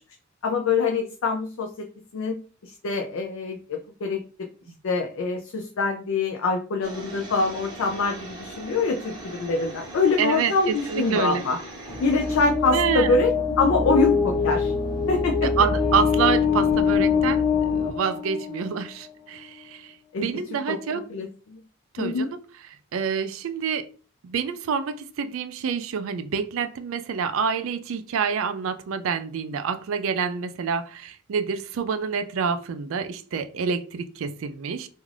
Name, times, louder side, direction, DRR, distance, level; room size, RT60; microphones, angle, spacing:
voice 1, 0.4-1.9 2.1-4.2 4.8-11.6 12.0-14.7 15.1-15.5 20.1-20.3 20.7-20.8 21.1-21.6 22.0-22.3, left 3 dB, 70° left, 0.4 m, -25 dB
sound 1, 6.8-12.5, right 2 dB, 20° right, 0.9 m, -40 dB
voice 2, 10.2-11.4 12.7-13.1 15.4-19.9 20.2-21.1 21.9-22.4 22.9-23.9 24.2-34.9, right 6 dB, 70° right, 0.3 m, -27 dB
sound 2, 11.9-18.8, left 6 dB, 15° left, 0.7 m, -24 dB
2.5 x 2.4 x 3.2 m
head